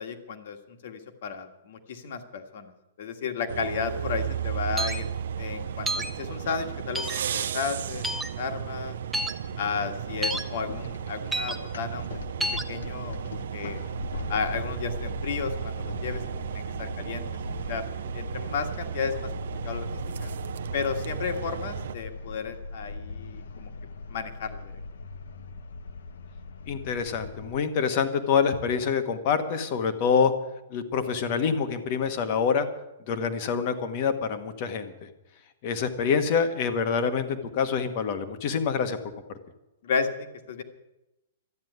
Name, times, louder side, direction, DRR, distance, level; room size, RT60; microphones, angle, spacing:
voice 1, 0.0-2.7 3.0-5.1 5.4-8.9 9.6-12.1 12.4-13.2 13.5-13.8 14.3-16.2 16.5-17.2 17.7-17.8 18.1-19.3 19.6-19.9 20.2-20.3 20.7-23.7 24.1-24.7 39.8-40.6, left 6 dB, 45° left, 7 dB, 1.6 m, -33 dB
sound 1, 3.5-22.0, right 8 dB, 60° right, 0.7 m, -34 dB
sound 2, 4.8-5.0 5.9-6.1 6.9-7.2 8.0-8.3 9.1-9.3 10.2-10.4 11.3-11.6 12.4-12.6, right 1 dB, 5° right, 0.6 m, -29 dB
sound 3, 9.5-27.6, left 3 dB, 75° left, 1.1 m, -40 dB
voice 2, 26.7-30.3 30.7-32.7 33.1-34.9 35.6-39.0, left 6 dB, 30° left, 9 dB, 1.2 m, -26 dB
13.0 x 9.4 x 9.4 m, 0.95 s
hypercardioid pair, 180°, 0 cm